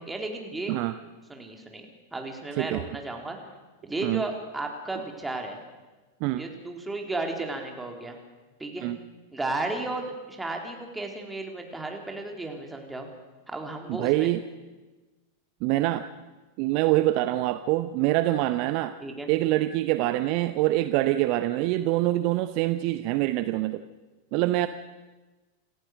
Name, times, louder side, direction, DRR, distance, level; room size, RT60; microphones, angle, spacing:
voice 1, 0.1-0.7 1.3-1.9 2.1-3.4 3.8-5.6 6.4-8.2 8.6-8.9 9.3-13.1 13.5-14.3 19.0-19.3, right 2 dB, 10° right, 2 dB, 3.6 m, -34 dB
voice 2, 13.9-14.4 15.6-16.1 16.6-19.0 19.3-23.8 24.3-24.7, right 16 dB, 45° right, 13 dB, 0.7 m, -25 dB
28.0 x 15.0 x 6.5 m, 1.2 s
figure-of-eight pair, 90°, 0 cm